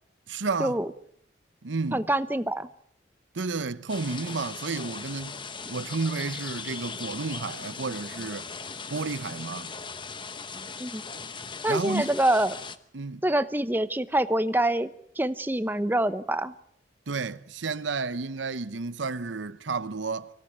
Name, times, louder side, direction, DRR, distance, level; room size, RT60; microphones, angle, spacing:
voice 1, 0.3-0.8 1.6-2.1 3.3-5.4 5.7-8.5 8.9-9.7 11.7-12.1 12.9-13.2 17.1-20.3, right 4 dB, 80° right, 0.8 m, -31 dB
voice 2, 1.9-2.7 10.8-11.0 11.6-12.6 13.2-14.9 15.2-16.5, right 1 dB, 10° right, 0.8 m, -25 dB
sound 1, 3.9-12.8, left 5 dB, 25° left, 1.0 m, -39 dB
24.5 x 17.0 x 8.8 m
head